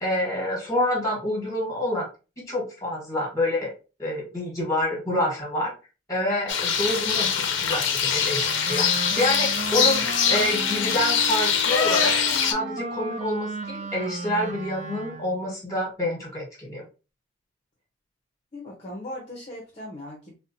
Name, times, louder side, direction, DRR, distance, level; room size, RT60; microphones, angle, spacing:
voice 1, 0.0-2.1 2.5-3.7 4.0-5.7 6.1-10.0 10.3-12.1 12.5-16.8, left 1 dB, 15° left, -1 dB, 1.3 m, -27 dB
sound 1, 6.5-12.5, left 7 dB, 70° left, 0.5 m, -23 dB
Wind instrument woodwind instrument, 8.2-15.4, right 3 dB, 35° right, 0.4 m, -35 dB
voice 2, 18.5-20.3, left 1 dB, 30° left, -1 dB, 0.7 m, -38 dB
4.2 x 2.1 x 2.6 m, 0.31 s
head